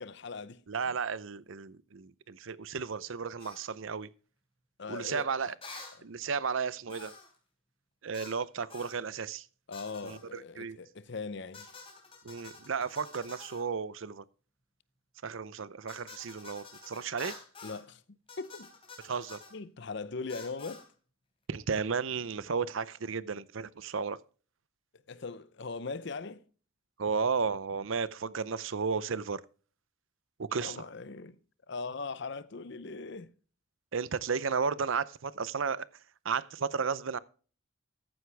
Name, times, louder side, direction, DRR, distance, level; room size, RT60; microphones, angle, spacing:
voice 1, 0.0-0.9 4.8-5.6 6.0-6.1 9.7-11.7 17.6-18.0 18.4-18.7 19.5-20.9 25.1-26.4 30.6-31.4 31.7-33.3, left 4 dB, 55° left, 0.7 m, -40 dB
voice 2, 0.7-4.1 4.9-5.5 6.0-7.1 8.0-9.4 10.0-10.2 10.6-10.8 12.2-14.2 15.2-17.4 19.0-19.4 21.5-24.2 27.0-29.4 30.4-30.8 33.9-35.8 36.2-37.2, right 5 dB, 70° right, 0.6 m, -33 dB
sound 1, 3.4-3.7 5.6-6.0 6.9-7.4 8.1-8.4 8.7-9.0 9.7-10.2 11.5-13.7 15.9-17.8 18.3-19.5 20.3-20.9, left 4 dB, 25° left, 3.5 m, -49 dB
14.0 x 9.5 x 3.4 m
head